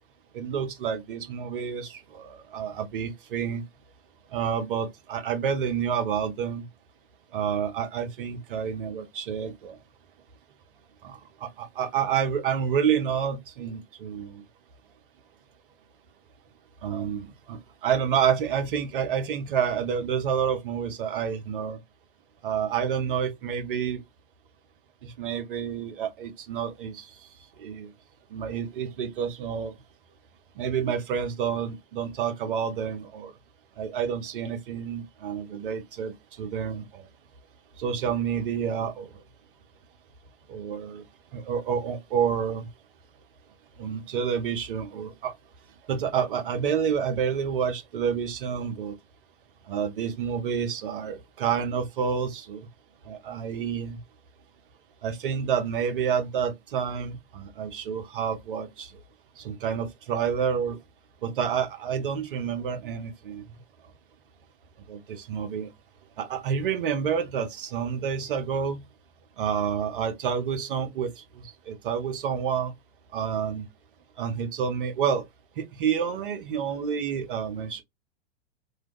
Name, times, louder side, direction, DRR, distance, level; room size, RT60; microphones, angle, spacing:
voice 1, 0.3-3.6 4.3-6.7 7.3-9.8 11.0-14.4 16.8-21.8 22.4-24.0 25.0-27.1 27.6-27.9 28.3-29.7 30.6-33.3 33.8-37.1 37.8-39.1 40.5-41.1 41.3-42.7 43.8-45.3 45.9-48.9 49.7-52.7 53.1-54.0 55.0-58.9 59.4-60.8 61.2-63.4 64.9-65.7 66.2-68.8 69.4-72.7 73.1-73.6 74.2-75.2 75.6-77.8, right 7 dB, 55° right, 0.9 m, -29 dB
3.2 x 2.3 x 3.0 m
figure-of-eight pair, 100°, 32 cm